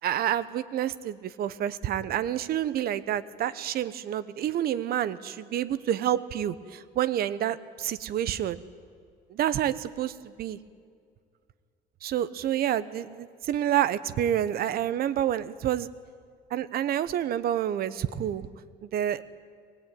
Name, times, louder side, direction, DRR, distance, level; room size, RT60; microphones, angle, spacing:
voice 1, 0.0-8.6 9.3-10.6 12.0-15.9 16.5-18.5 18.8-19.2, right 11 dB, 65° right, 15 dB, 1.1 m, -28 dB
23.5 x 19.0 x 9.3 m, 2.1 s
cardioid pair, 110°, 17 cm